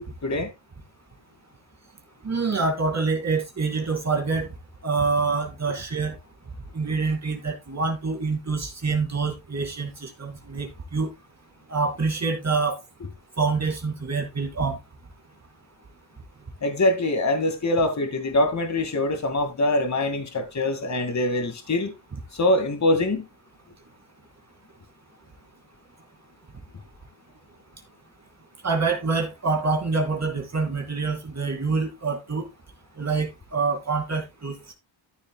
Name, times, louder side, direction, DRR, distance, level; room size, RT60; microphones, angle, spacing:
voice 1, 2.2-4.5 4.8-6.1 6.7-11.1 11.7-12.8 13.4-14.8 28.6-32.5 33.0-34.5, right 4 dB, 35° right, 2.5 m, -26 dB
voice 2, 16.6-21.9 22.3-23.3, left 2 dB, 35° left, 2.2 m, -24 dB
14.0 x 7.0 x 2.3 m
wide cardioid pair, 130°, 47 cm